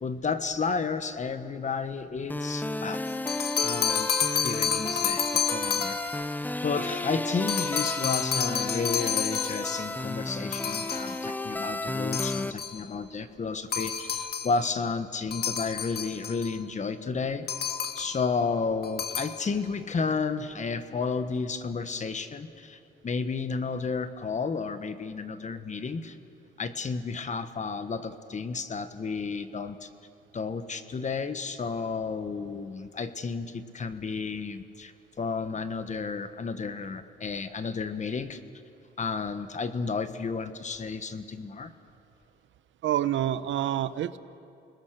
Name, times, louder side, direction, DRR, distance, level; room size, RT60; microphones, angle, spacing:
voice 1, 0.0-3.0 3.6-5.2 5.5-6.3 6.6-17.5 17.9-26.2 26.6-29.9 30.3-34.9 35.2-38.4 39.0-41.7, left 4 dB, 35° left, 10 dB, 1.5 m, -32 dB
sound 1, 2.3-12.5, left 2 dB, 10° left, 0.6 m, -33 dB
sound 2, 3.1-6.2 7.5-9.9 10.5-11.2 12.1-12.8 13.7-14.6 15.3-16.5 17.5-18.2 18.8-19.4, left 7 dB, 50° left, 2.1 m, -30 dB
voice 2, 42.8-44.2, right 11 dB, 75° right, 14 dB, 0.9 m, -27 dB
29.0 x 20.5 x 6.8 m, 2.5 s
cardioid pair, 90°, 20 cm